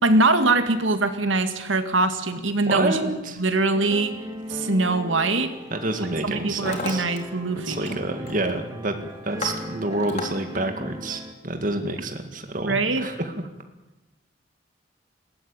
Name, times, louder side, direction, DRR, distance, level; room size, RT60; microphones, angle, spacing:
voice 1, 0.0-3.1 3.4-4.2 4.5-5.5 6.2-8.0 12.6-13.1, right 2 dB, 85° right, 8 dB, 2.1 m, -22 dB
voice 2, 2.7-3.4 5.7-7.1 7.7-9.0 9.2-13.3, right 2 dB, 45° right, 6 dB, 2.1 m, -28 dB
sound 1, 3.7-11.3, equal, 15° right, 2.4 m, -39 dB
Hammer, 4.7-4.9 5.7-6.0 6.2-7.2 7.5-8.0 8.2-8.6 9.0-10.3, left 3 dB, 35° left, 3.8 m, -34 dB
21.0 x 17.5 x 8.9 m, 1.0 s
head